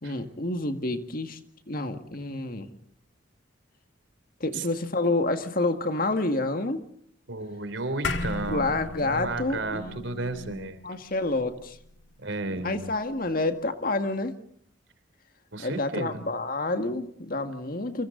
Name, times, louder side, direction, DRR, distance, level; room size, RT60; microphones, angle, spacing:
voice 1, 0.0-1.4 1.7-2.7 4.4-6.8 8.5-11.8 12.5-14.3 15.6-18.1, left 2 dB, 50° left, 7 dB, 1.9 m, -29 dB
voice 2, 7.3-10.8 12.2-12.9 15.5-16.2, right 2 dB, 80° right, 11 dB, 3.3 m, -33 dB
sound 1, 8.0-12.7, left 3 dB, 75° left, 1.8 m, -36 dB
29.5 x 24.5 x 4.0 m, 0.64 s
head